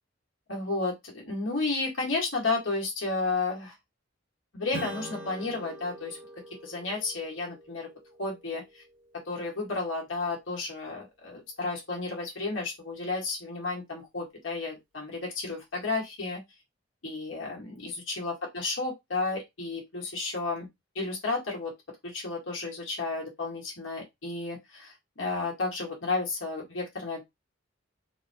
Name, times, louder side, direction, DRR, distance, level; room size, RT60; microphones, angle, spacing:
voice 1, 0.5-3.7 4.5-6.2 6.6-7.9 8.2-8.8 9.3-16.4 17.0-20.7 20.9-21.7 22.0-27.2, left 3 dB, 80° left, -1 dB, 1.5 m, -32 dB
Strum, 4.7-9.7, right 1 dB, 70° right, 0.9 m, -44 dB
4.0 x 2.2 x 2.8 m, 0.18 s
head